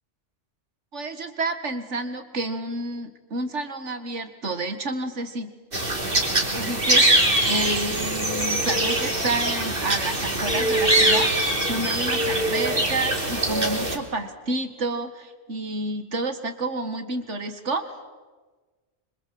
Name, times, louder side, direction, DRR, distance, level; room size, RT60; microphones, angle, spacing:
voice 1, 0.9-5.6 6.5-17.9, right 2 dB, 80° right, 8 dB, 2.3 m, -30 dB
sound 1, 5.7-14.0, right 1 dB, 50° right, 3.5 m, -23 dB
26.0 x 25.5 x 7.8 m, 1.3 s
omnidirectional pair, 1.2 m